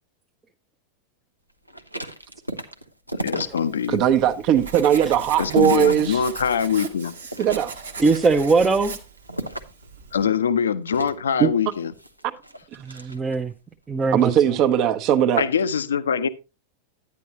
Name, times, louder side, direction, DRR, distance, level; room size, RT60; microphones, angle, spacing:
sound 1, 1.7-3.9 4.3-6.7 7.1-8.0 8.5-9.9 10.9-13.5 14.0-14.3, right 1 dB, 90° right, 0.7 m, -36 dB
voice 1, 3.2-4.0 5.4-7.1 10.1-11.9 15.4-16.3, left 7 dB, 70° left, 0.5 m, -23 dB
Writing, 3.5-10.2, right 4 dB, 70° right, 1.2 m, -38 dB
voice 2, 3.9-6.2 7.4-7.7 11.4-11.5 12.9-13.0 14.1-15.4, right 10 dB, 40° right, 0.9 m, -19 dB
voice 3, 8.0-9.0 12.8-13.5 13.9-14.3, right 4 dB, 15° right, 0.7 m, -20 dB
10.5 x 9.9 x 2.9 m
figure-of-eight pair, 90°, 0 cm